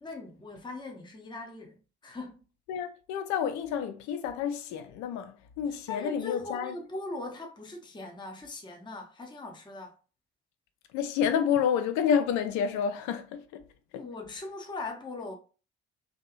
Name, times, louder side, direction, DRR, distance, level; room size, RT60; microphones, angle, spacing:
voice 1, 0.0-2.4 5.9-9.9 13.9-15.4, left 3 dB, 15° left, 0.6 m, -40 dB
voice 2, 2.7-6.7 10.9-13.6 13.9-14.0, left 8 dB, 60° left, 0.5 m, -29 dB
2.6 x 2.3 x 2.4 m
figure-of-eight pair, 40°, 33 cm